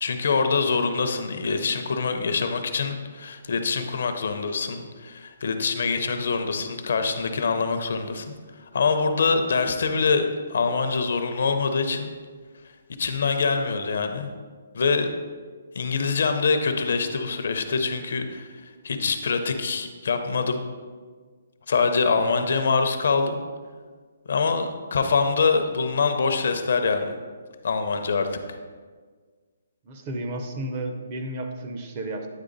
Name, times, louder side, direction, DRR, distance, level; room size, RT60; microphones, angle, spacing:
voice 1, 0.0-8.3 8.7-12.1 13.0-14.3 14.7-15.1 15.7-18.5 18.8-20.7 21.7-23.4 24.3-27.1 27.6-28.3, left 4 dB, 60° left, 7 dB, 0.5 m, -24 dB
voice 2, 29.8-32.3, right 1 dB, 25° right, 4 dB, 0.5 m, -32 dB
8.9 x 3.3 x 3.9 m, 1.5 s
hypercardioid pair, 175°, 0 cm